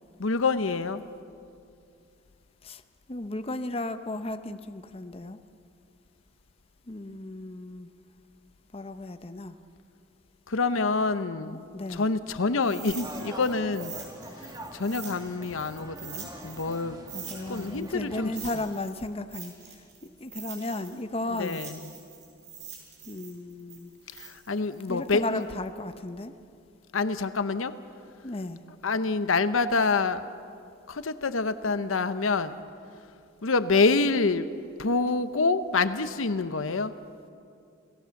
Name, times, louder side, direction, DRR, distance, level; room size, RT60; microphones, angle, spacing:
voice 1, 0.2-1.0 10.5-13.9 14.7-17.0 17.5-18.3 21.3-21.8 24.1-25.4 26.9-27.7 28.8-30.3 30.9-32.6 33.4-34.4 34.8-36.9, left 3 dB, 85° left, 12 dB, 0.9 m, -27 dB
voice 2, 3.1-5.4 6.9-7.9 8.7-9.6 11.4-12.1 17.1-19.8 20.0-21.6 23.1-23.9 24.9-26.3 28.2-28.6, left 2 dB, 30° left, 9 dB, 0.8 m, -35 dB
sound 1, 12.6-16.8 17.1-21.0 21.3-25.4, right 7 dB, 55° right, 5.7 m, -44 dB
sound 2, 12.9-18.4, right 1 dB, 20° right, 1.9 m, -44 dB
28.5 x 17.0 x 7.1 m, 2.4 s
head